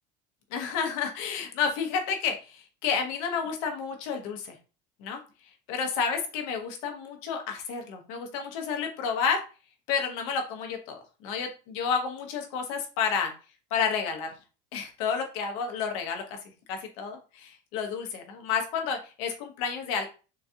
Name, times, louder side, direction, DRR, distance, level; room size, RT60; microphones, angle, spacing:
voice 1, 0.5-4.5 5.0-5.2 5.7-9.4 9.9-13.3 13.7-14.3 14.7-16.4 16.7-20.1, left 6 dB, 75° left, 3 dB, 0.9 m, -30 dB
3.9 x 2.3 x 2.7 m, 0.34 s
cardioid pair, 165°, 17 cm